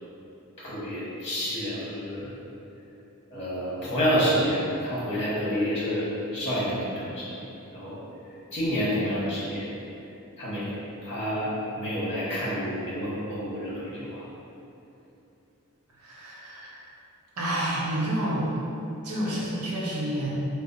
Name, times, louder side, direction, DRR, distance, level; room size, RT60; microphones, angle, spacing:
voice 1, 0.6-2.3 3.3-7.5 7.7-8.0 8.5-9.7 10.4-11.5 11.8-14.2 19.2-19.4, equal, 30° left, -9 dB, 1.0 m, -29 dB
voice 2, 16.0-16.8 17.4-18.5 19.0-20.3, right 1 dB, 85° right, -5 dB, 1.0 m, -29 dB
4.8 x 2.1 x 4.0 m, 2.8 s
head